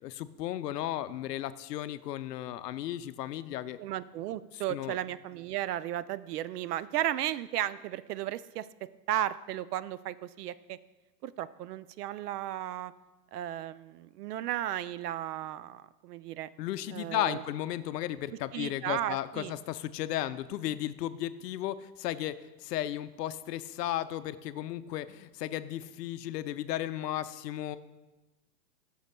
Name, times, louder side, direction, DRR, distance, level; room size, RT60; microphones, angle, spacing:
voice 1, 0.0-3.8 4.7-5.0 16.6-22.4 22.6-27.8, left 13 dB, 75° left, 13 dB, 0.6 m, -35 dB
voice 2, 3.8-8.7 9.1-10.8 11.2-12.9 13.3-16.5 16.9-17.4 18.5-19.5, right 12 dB, 70° right, 16 dB, 0.5 m, -34 dB
14.5 x 6.4 x 2.2 m, 1.1 s
hypercardioid pair, 150°, 49 cm